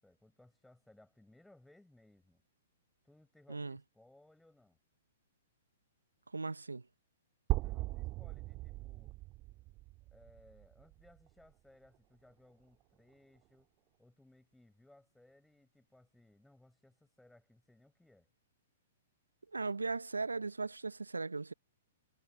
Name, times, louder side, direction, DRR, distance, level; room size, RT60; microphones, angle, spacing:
voice 1, 0.0-2.4 3.0-4.8 7.6-9.2 10.1-13.7 14.0-18.3, left 1 dB, 5° left, 7.1 m, -64 dB
voice 2, 3.5-3.8 6.3-6.8 19.5-21.5, right 3 dB, 85° right, 0.6 m, -38 dB
sound 1, 7.5-11.4, right 20 dB, 35° right, 1.8 m, -39 dB
figure-of-eight pair, 115°, 0 cm